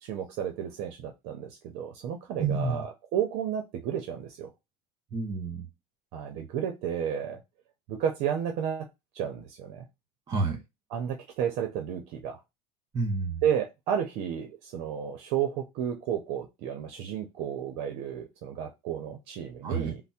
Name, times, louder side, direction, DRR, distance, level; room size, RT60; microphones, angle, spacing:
voice 1, 0.0-4.5 6.1-7.4 7.9-8.9 9.1-9.8 10.9-12.4 13.4-20.0, right 9 dB, 65° right, 0.6 m, -32 dB
voice 2, 2.4-2.8 5.1-5.6 10.3-10.6 12.9-13.4 19.6-19.9, right 4 dB, 30° right, 1.5 m, -29 dB
3.4 x 2.0 x 4.2 m
cardioid pair, 155°, 12 cm